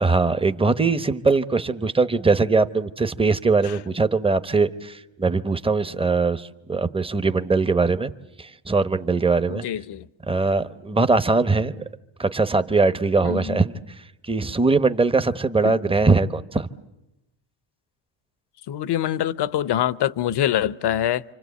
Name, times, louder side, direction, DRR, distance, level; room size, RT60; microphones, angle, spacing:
voice 1, 0.0-8.1 8.4-9.7 10.3-11.7 12.2-13.7 14.2-16.7, right 3 dB, 10° right, 0.9 m, -21 dB
voice 2, 9.5-10.1 13.2-13.6 15.6-15.8 18.7-21.2, left 11 dB, 60° left, 0.9 m, -24 dB
28.5 x 25.0 x 8.3 m
cardioid pair, 110°, 46 cm